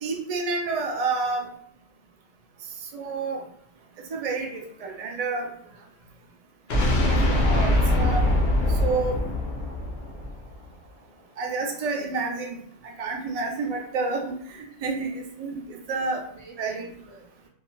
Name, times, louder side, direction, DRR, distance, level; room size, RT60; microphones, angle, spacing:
voice 1, 0.0-1.5 2.9-3.4 4.1-5.5 6.8-8.3 8.8-9.2 11.4-12.5 12.8-16.2 16.6-16.9, right 3 dB, 70° right, 1 dB, 0.3 m, -29 dB
voice 2, 2.5-3.0 5.5-5.9 10.1-10.3 16.1-17.5, right 3 dB, 90° right, 1 dB, 1.0 m, -52 dB
sound 1, 6.7-10.7, left 1 dB, 60° left, 0.8 m, -22 dB
2.9 x 2.3 x 2.2 m, 0.67 s
omnidirectional pair, 1.2 m